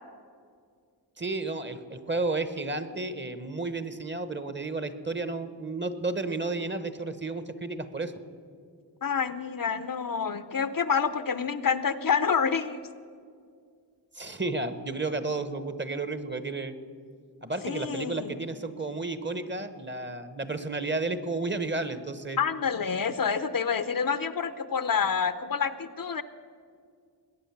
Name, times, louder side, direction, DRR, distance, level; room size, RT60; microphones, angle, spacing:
voice 1, 1.2-8.1 14.1-16.7 17.4-22.4, right 3 dB, 25° right, 11 dB, 1.1 m, -32 dB
voice 2, 9.0-12.8 17.6-18.4 22.4-26.2, left 6 dB, 50° left, 13 dB, 0.7 m, -28 dB
21.0 x 8.8 x 7.2 m, 2.1 s
wide cardioid pair, 75°, 42 cm